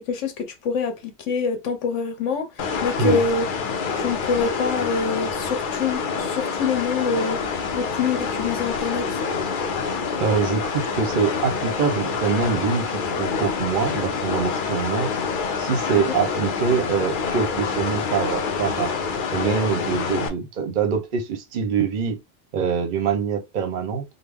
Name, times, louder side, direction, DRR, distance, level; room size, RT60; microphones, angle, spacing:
voice 1, 0.1-1.0 1.3-2.5 2.8-3.5 3.9-7.4 7.7-9.2 15.9-16.0, left 5 dB, 70° left, 1.1 m, -25 dB
sound 1, 2.6-20.3, left 5 dB, 55° left, 0.6 m, -27 dB
voice 2, 10.2-15.2 15.6-18.9 19.3-22.2 22.5-24.0, right 6 dB, 50° right, 0.7 m, -24 dB
3.5 x 2.1 x 3.4 m
omnidirectional pair, 1.3 m